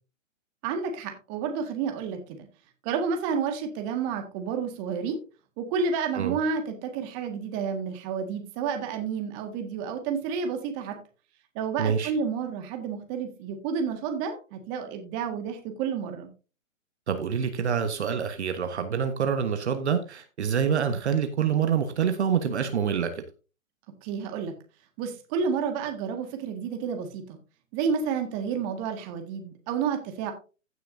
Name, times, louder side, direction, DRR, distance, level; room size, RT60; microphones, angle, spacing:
voice 1, 0.6-2.5 2.8-5.2 5.6-11.0 11.6-16.3 24.0-24.6 25.0-27.4 27.7-30.3, right 6 dB, 25° right, 5 dB, 1.8 m, -30 dB
voice 2, 11.8-12.1 17.1-23.2, right 7 dB, 55° right, 8 dB, 1.4 m, -26 dB
15.5 x 6.5 x 2.7 m, 0.32 s
hypercardioid pair, 140°, 39 cm